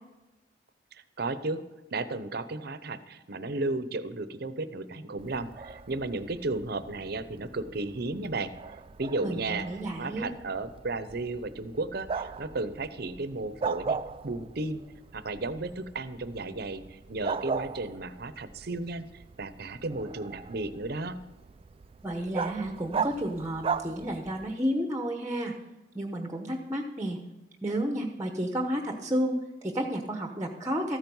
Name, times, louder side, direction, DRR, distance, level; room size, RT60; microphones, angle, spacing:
voice 1, 0.9-1.6 1.9-8.5 9.0-9.7 10.0-14.0 14.2-14.8 15.1-21.2, right 2 dB, 55° right, 12 dB, 0.8 m, -34 dB
Bark, 5.2-24.6, right 5 dB, 30° right, 0.3 m, -38 dB
voice 2, 9.2-10.3 22.0-25.5 25.9-27.2 27.6-31.0, equal, 15° right, 4 dB, 0.9 m, -31 dB
13.5 x 9.1 x 5.5 m, 1.0 s
head